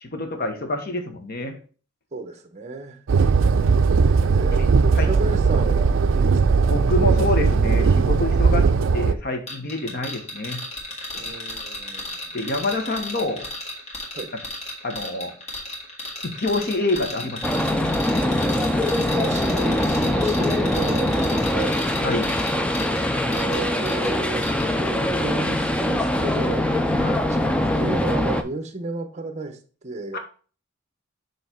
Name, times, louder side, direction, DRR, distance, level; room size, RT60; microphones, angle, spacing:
voice 1, 0.0-1.6 4.9-5.1 6.7-10.6 11.1-11.3 12.3-13.5 14.8-15.3 16.2-17.6 22.0-22.4 27.0-27.2 30.1-30.2, left 2 dB, 50° left, 5 dB, 1.0 m, -27 dB
voice 2, 2.1-3.0 4.3-6.7 11.2-12.2 14.2-14.3 18.7-22.0 23.3-24.4 24.8-26.6 27.1-29.6 29.8-30.2, right 3 dB, 35° right, 7 dB, 0.8 m, -32 dB
sound 1, 3.1-9.1, right 5 dB, 70° right, 0.4 m, -18 dB
sound 2, 9.5-24.1 24.4-24.7, left 2 dB, 35° left, 1.8 m, -34 dB
sound 3, 17.4-28.4, left 1 dB, 5° left, 0.4 m, -23 dB
6.9 x 3.2 x 4.3 m, 0.40 s
head